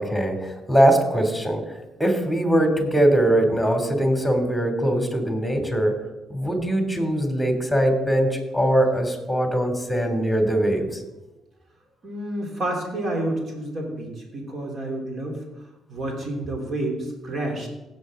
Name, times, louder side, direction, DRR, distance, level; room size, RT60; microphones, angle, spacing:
voice 1, 0.0-1.6 2.0-6.0 6.3-11.0, right 1 dB, ahead, 4 dB, 2.8 m, -21 dB
voice 2, 12.0-15.4 15.9-17.7, right 1 dB, 55° right, 0 dB, 3.3 m, -29 dB
16.5 x 6.5 x 3.8 m, 1.0 s
hypercardioid pair, 45°, 0 cm